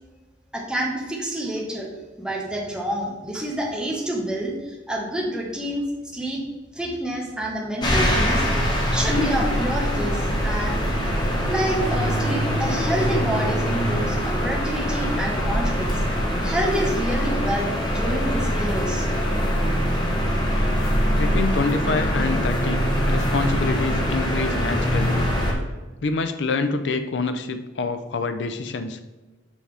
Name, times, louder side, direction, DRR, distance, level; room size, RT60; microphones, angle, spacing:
voice 1, 0.5-1.9 2.2-5.8 6.1-6.4 6.7-8.4 8.9-10.8 11.5-15.9 16.4-19.1, right 1 dB, 5° right, -2 dB, 1.1 m, -28 dB
sound 1, 7.8-25.5, equal, 25° left, 1.0 m, -23 dB
voice 2, 21.2-25.2 26.0-29.0, left 3 dB, 75° left, 9 dB, 0.5 m, -26 dB
7.1 x 4.3 x 3.4 m, 1.2 s
head